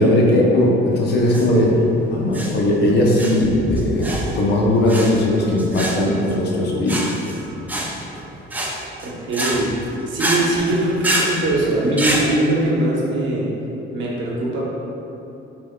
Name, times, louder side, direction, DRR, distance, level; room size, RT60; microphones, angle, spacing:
voice 1, 0.0-1.8 2.1-7.0, left 1 dB, 55° left, -2 dB, 0.7 m, -18 dB
sound 1, 1.2-12.3, right 1 dB, 10° right, 0.4 m, -26 dB
voice 2, 9.0-9.7 10.1-13.5 13.9-14.6, right 1 dB, 65° right, -4 dB, 1.0 m, -21 dB
5.2 x 3.4 x 2.2 m, 2.9 s
cardioid pair, 135°, 21 cm